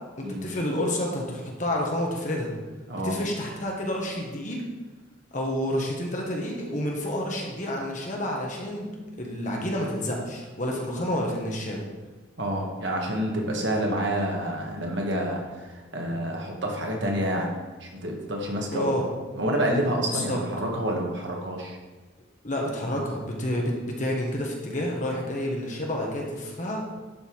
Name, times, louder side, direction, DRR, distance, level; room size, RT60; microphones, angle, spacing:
voice 1, 0.2-2.5 3.0-4.6 5.3-8.9 9.2-11.8 18.7-19.1 20.1-20.4 22.4-26.8, left 1 dB, 40° left, -1 dB, 1.6 m, -29 dB
voice 2, 12.4-17.5 17.8-19.0 19.3-21.8, right 1 dB, 60° right, 0 dB, 1.7 m, -28 dB
11.5 x 5.5 x 4.7 m, 1.3 s
head